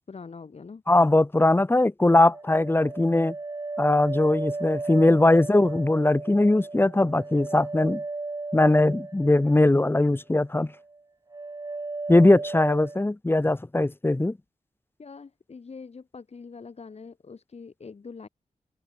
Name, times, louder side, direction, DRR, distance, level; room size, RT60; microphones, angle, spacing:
voice 1, 0.1-0.8 15.0-18.3, left 5 dB, 55° left, 5.8 m, -43 dB
voice 2, 0.9-3.3 3.8-8.0 8.5-10.7 12.1-14.4, left 2 dB, 15° left, 1.4 m, -20 dB
sound 1, 2.0-10.1 10.4-11.0 11.3-13.1, right 3 dB, 25° right, 1.2 m, -35 dB
open air
wide cardioid pair, 140°, 13 cm